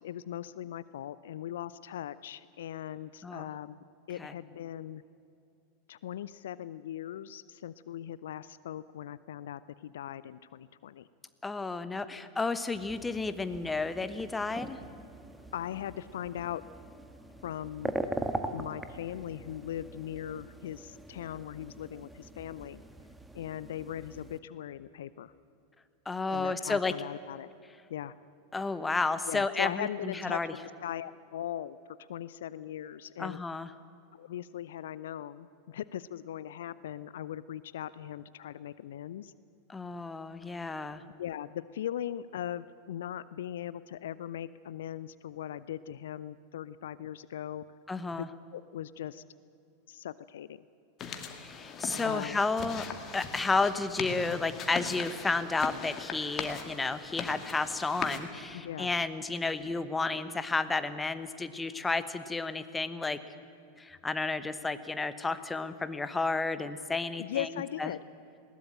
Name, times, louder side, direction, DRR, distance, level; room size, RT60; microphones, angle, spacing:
voice 1, 0.0-3.8 4.1-5.0 5.9-11.1 15.5-16.6 17.4-17.9 18.5-22.8 23.3-25.3 26.3-27.5 27.9-28.1 29.3-33.4 34.1-39.3 41.2-47.7 48.5-49.2 49.9-50.6 52.0-52.4 58.5-58.9 67.2-68.0, left 11 dB, 65° left, 17 dB, 0.5 m, -39 dB
voice 2, 11.4-14.8 26.1-26.9 28.5-30.5 33.2-33.7 39.7-41.0 47.9-48.3 51.3-52.9 53.1-63.2 63.8-67.5 67.8-67.9, left 3 dB, 10° left, 12 dB, 1.2 m, -32 dB
sound 1, 12.7-24.4, right 1 dB, 5° right, 1.6 m, -42 dB
sound 2, 51.0-58.2, left 6 dB, 35° left, 2.4 m, -40 dB
20.5 x 17.5 x 8.9 m, 2.7 s
figure-of-eight pair, 90°, 0 cm